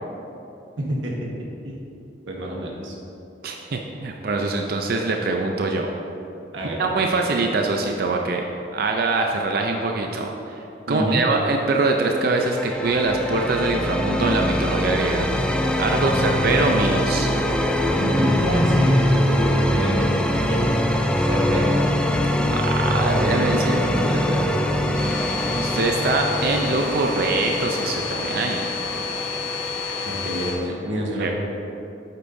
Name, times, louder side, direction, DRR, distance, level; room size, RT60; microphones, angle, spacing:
voice 1, 0.8-1.3 1.6-1.8 2.3-2.9 6.5-6.9 10.9-11.2 15.9-16.4 18.0-20.8 21.2-21.8 23.6-24.7 30.0-31.3, right 1 dB, 85° right, -2 dB, 1.4 m, -27 dB
voice 2, 3.4-5.9 6.8-8.4 8.7-15.3 15.7-17.3 22.5-23.8 25.6-28.7 31.2-31.3, right 3 dB, 55° right, 2 dB, 0.5 m, -23 dB
sound 1, 12.1-29.8, left 1 dB, 5° left, 0.3 m, -23 dB
Domestic sounds home sounds, 24.9-30.5, left 4 dB, 20° left, 1.6 m, -29 dB
8.4 x 8.2 x 2.7 m, 2.8 s
head